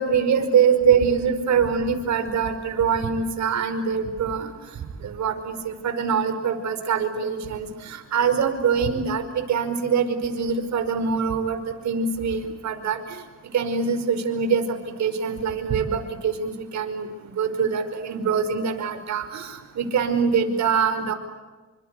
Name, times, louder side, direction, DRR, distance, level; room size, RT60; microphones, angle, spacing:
voice 1, 0.0-4.5 5.0-13.2 13.5-17.1 17.4-21.1, right 6 dB, 65° right, 8 dB, 5.3 m, -24 dB
28.5 x 25.0 x 8.3 m, 1.3 s
cardioid pair, 90°, 30 cm